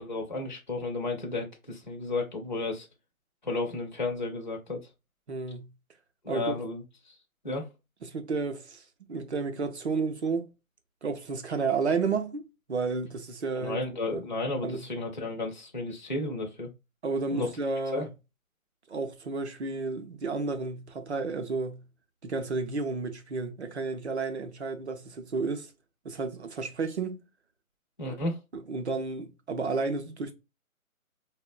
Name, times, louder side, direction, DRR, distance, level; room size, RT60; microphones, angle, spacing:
voice 1, 0.0-2.9 3.4-4.8 6.2-6.8 7.4-7.7 13.6-16.7 17.3-17.5 17.9-18.1 28.0-28.4, left 2 dB, 35° left, 0.4 m, -33 dB
voice 2, 5.3-5.7 6.3-6.5 8.0-8.8 9.1-10.5 11.0-13.9 14.1-14.3 14.6-14.9 17.0-18.1 18.9-21.8 22.2-25.7 26.0-27.2 28.1-28.2 28.5-30.3, right 4 dB, 50° right, 0.6 m, -32 dB
3.9 x 2.1 x 2.3 m
figure-of-eight pair, 165°, 43 cm